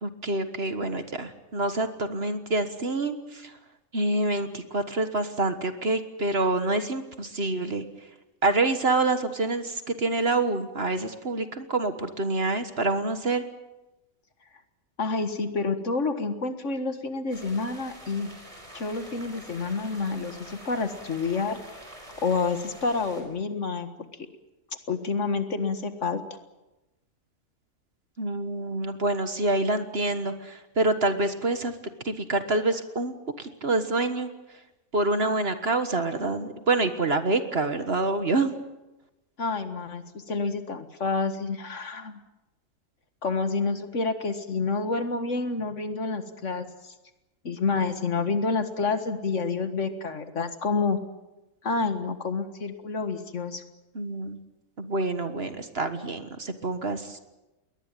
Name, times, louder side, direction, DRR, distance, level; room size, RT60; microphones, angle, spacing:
voice 1, 0.0-3.5 3.9-7.8 8.4-13.4 28.2-31.7 32.0-34.3 34.9-38.5 53.9-54.4 54.8-57.2, right 2 dB, 45° right, 9 dB, 1.7 m, -27 dB
voice 2, 15.0-18.3 18.7-21.6 22.2-23.9 24.9-26.2 39.4-42.2 43.2-46.9 47.4-51.0 51.6-53.6, left 4 dB, 55° left, 9 dB, 1.9 m, -28 dB
sound 1, 17.3-23.2, right 1 dB, 20° right, 5.1 m, -46 dB
22.0 x 19.0 x 9.2 m, 1.0 s
omnidirectional pair, 1.5 m